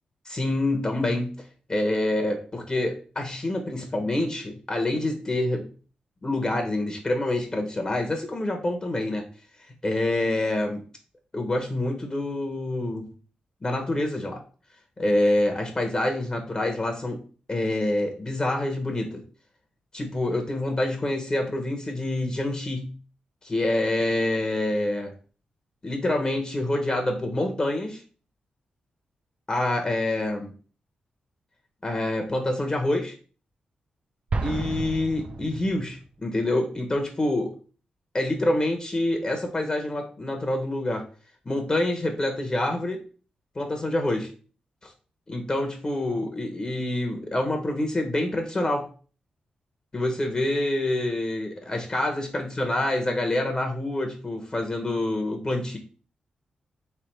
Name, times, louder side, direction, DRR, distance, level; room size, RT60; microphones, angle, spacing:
voice 1, 0.2-1.4 1.7-5.7 6.2-9.2 9.8-10.8 11.3-13.1 13.6-14.4 15.0-17.2 17.5-19.2 19.9-22.9 23.4-25.1 25.8-28.0 29.5-30.5 31.8-33.1 34.4-37.5 38.1-41.0 41.4-43.0 43.5-44.3 44.8-44.9 45.3-48.9 49.9-55.8, left 1 dB, 30° left, 2 dB, 1.1 m, -26 dB
Explosion, 34.3-36.1, right 3 dB, 50° right, 0.6 m, -31 dB
3.4 x 3.4 x 4.5 m, 0.39 s
cardioid pair, 65°, 3 cm